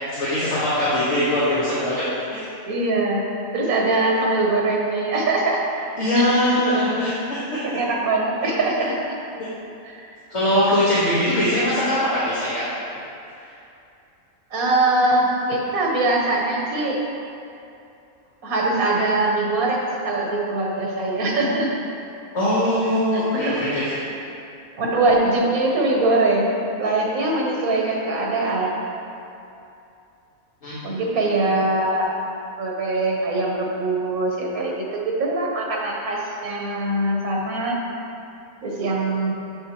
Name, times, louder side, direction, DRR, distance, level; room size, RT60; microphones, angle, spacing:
voice 1, 0.0-2.0 2.3-2.4 6.0-7.6 8.4-8.6 10.3-12.7 12.9-13.0 22.3-23.8 30.6-31.0, left 1 dB, 55° left, -12 dB, 1.6 m, -21 dB
voice 2, 2.6-3.3 3.5-5.6 6.1-6.3 6.7-6.8 7.6-9.3 9.8-10.1 14.5-17.0 18.4-21.8 23.1-23.6 24.8-28.8 30.8-32.1 32.6-37.8 38.6-39.3, right 2 dB, 85° right, -1 dB, 1.5 m, -22 dB
7.3 x 6.7 x 3.0 m, 2.7 s
omnidirectional pair, 1.5 m